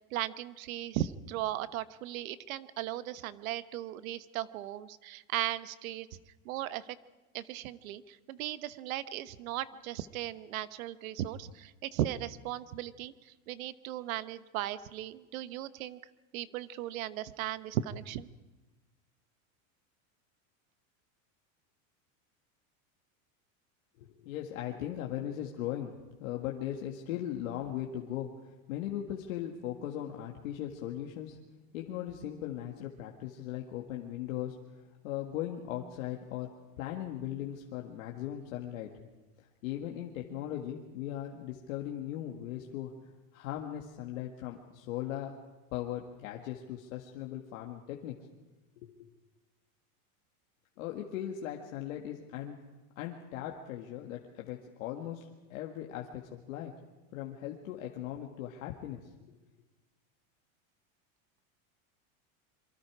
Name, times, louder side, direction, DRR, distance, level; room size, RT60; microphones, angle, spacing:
voice 1, 0.1-6.1 6.4-6.9 7.3-16.0 16.3-18.3, right 13 dB, 75° right, 14 dB, 1.1 m, -37 dB
voice 2, 24.0-25.9 26.2-28.3 28.7-31.4 31.7-34.6 35.0-36.5 36.8-38.9 39.4-42.9 43.3-45.4 45.7-48.2 48.8-48.9 50.8-52.6 53.0-56.7 57.1-59.4, left 11 dB, 70° left, 1 dB, 1.9 m, -38 dB
26.0 x 24.0 x 4.9 m, 1.2 s
supercardioid pair, 175°, 41 cm